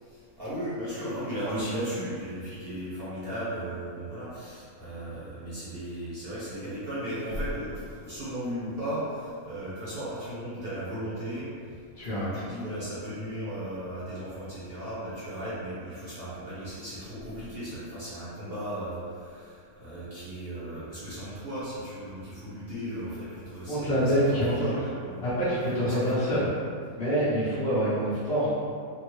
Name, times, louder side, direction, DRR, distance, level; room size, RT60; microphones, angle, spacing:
voice 1, 0.0-11.8 12.1-25.2 25.8-26.3, equal, 50° right, -10 dB, 0.8 m, -36 dB
voice 2, 11.9-12.4 23.7-24.9 25.2-26.5 27.0-28.5, equal, 55° left, -10 dB, 0.9 m, -26 dB
3.6 x 2.1 x 3.0 m, 2.2 s
omnidirectional pair, 1.6 m